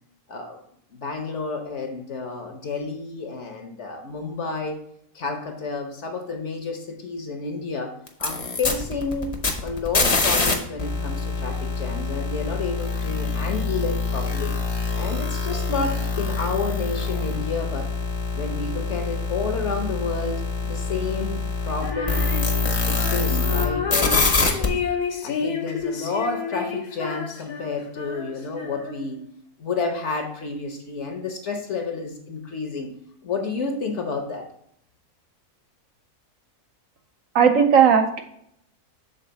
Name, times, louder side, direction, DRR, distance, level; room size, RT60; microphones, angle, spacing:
voice 1, 0.3-0.6 0.9-4.8 5.1-7.9 8.2-9.3 9.6-14.5 15.0-17.9 18.3-22.3 22.8-24.8 25.2-29.3 29.6-32.9 33.2-34.4, left 4 dB, 55° left, 4 dB, 0.9 m, -30 dB
sound 1, 8.1-10.5 10.8-23.6 23.9-24.7, left 3 dB, 30° left, 0.6 m, -25 dB
Female singing, 21.8-29.2, left 6 dB, 80° left, 1.5 m, -30 dB
voice 2, 37.3-38.2, right 7 dB, 65° right, 5 dB, 0.9 m, -16 dB
6.7 x 3.9 x 3.9 m, 0.71 s
omnidirectional pair, 1.7 m